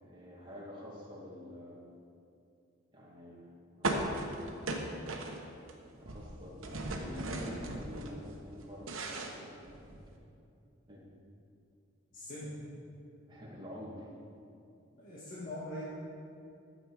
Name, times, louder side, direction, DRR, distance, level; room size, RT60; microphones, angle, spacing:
voice 1, 0.0-1.8 2.9-4.1 5.9-9.9 10.9-11.0 13.3-14.1, equal, 25° right, -5 dB, 2.2 m, -47 dB
sound 1, 3.8-5.7 6.0-8.1 8.5-10.1, right 2 dB, 85° right, 1.3 m, -37 dB
voice 2, 12.1-12.5 14.9-15.8, left 1 dB, 40° left, -8 dB, 1.8 m, -42 dB
13.0 x 7.7 x 4.9 m, 2.6 s
head